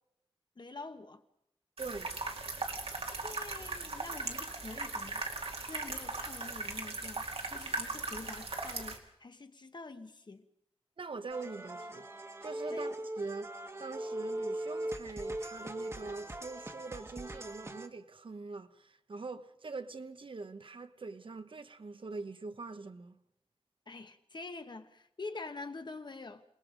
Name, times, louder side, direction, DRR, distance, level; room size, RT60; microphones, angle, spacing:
voice 1, 0.6-1.2 3.2-10.5 12.7-13.0 23.9-26.4, left 3 dB, 50° left, 1.4 m, -46 dB
voice 2, 1.8-2.2 11.0-23.2, right 3 dB, 60° right, 1.1 m, -43 dB
sound 1, 1.8-9.0, right 3 dB, 75° right, 2.2 m, -38 dB
sound 2, 11.3-17.9, right 1 dB, 30° right, 1.4 m, -40 dB
28.0 x 19.5 x 5.2 m
wide cardioid pair, 100°, 10 cm